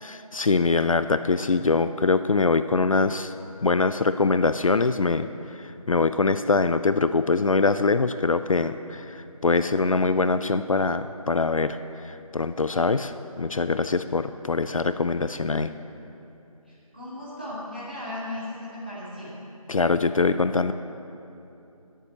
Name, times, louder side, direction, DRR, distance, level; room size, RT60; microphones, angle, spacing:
voice 1, 0.0-3.3 3.6-11.8 12.0-15.7 19.7-20.7, left 4 dB, 65° left, 11 dB, 0.4 m, -23 dB
voice 2, 16.7-19.3, left 1 dB, 15° right, -10 dB, 1.8 m, -36 dB
9.5 x 7.4 x 8.0 m, 2.9 s
figure-of-eight pair, 180°, 19 cm